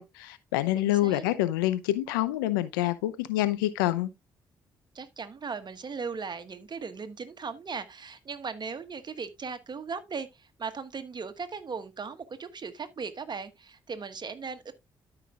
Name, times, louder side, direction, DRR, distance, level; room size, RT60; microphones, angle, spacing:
voice 1, 0.0-4.1, left 15 dB, 85° left, 0.6 m, -27 dB
voice 2, 0.7-1.3 4.9-14.7, right 5 dB, 40° right, 1.3 m, -38 dB
13.0 x 5.9 x 2.4 m
hypercardioid pair, 45°, 11 cm